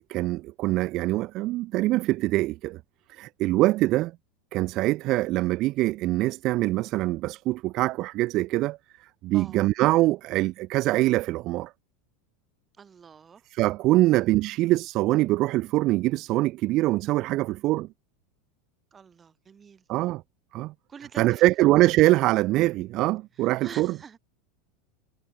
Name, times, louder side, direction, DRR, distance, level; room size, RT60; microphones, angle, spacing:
voice 1, 0.1-2.8 3.1-4.1 4.5-11.7 13.5-17.9 19.9-20.2 20.5-20.7 21.2-24.0, right 18 dB, 45° right, 0.4 m, -24 dB
voice 2, 12.8-13.5 14.0-14.2 18.9-19.8 20.9-21.7 23.4-24.2, right 6 dB, 20° right, 4.2 m, -46 dB
figure-of-eight pair, 80°, 0 cm